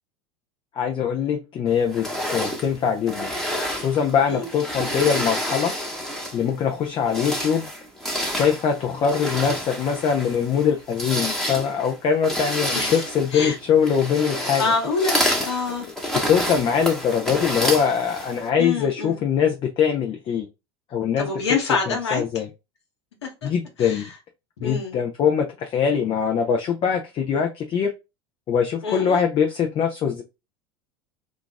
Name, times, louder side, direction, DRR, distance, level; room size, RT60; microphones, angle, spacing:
voice 1, 0.7-3.3 3.7-5.7 6.3-7.7 8.4-14.7 16.3-20.5 20.9-21.3 21.9-22.5 23.4-24.1 24.6-27.9 28.5-30.2, left 7 dB, 40° left, 0.5 m, -22 dB
sound 1, 1.9-6.5 6.9-18.5, equal, 5° left, 0.9 m, -29 dB
voice 2, 12.7-13.0 13.3-13.6 14.6-15.9 18.6-19.2 21.2-22.4 23.2-23.5 23.8-24.1 24.6-25.0 28.8-29.2, left 4 dB, 85° left, 1.0 m, -26 dB
2.4 x 2.3 x 3.9 m
hypercardioid pair, 85°, 14 cm